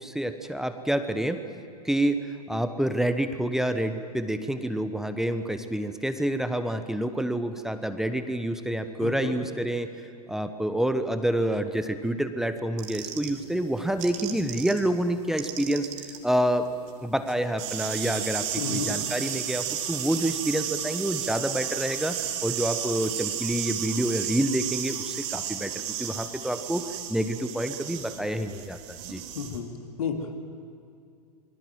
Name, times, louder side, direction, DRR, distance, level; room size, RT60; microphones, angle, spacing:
voice 1, 0.0-1.4 1.8-9.9 10.3-15.9 16.2-16.7 17.0-26.8 27.1-29.2, right 1 dB, ahead, 9 dB, 1.1 m, -28 dB
voice 2, 9.0-9.3 18.6-19.0 29.3-29.7 30.0-30.4, left 5 dB, 60° left, 4 dB, 3.0 m, -31 dB
sound 1, 12.8-14.8 15.1-29.6, right 10 dB, 45° right, 2.9 m, -33 dB
26.5 x 22.5 x 7.6 m, 2.5 s
figure-of-eight pair, 95°, 20 cm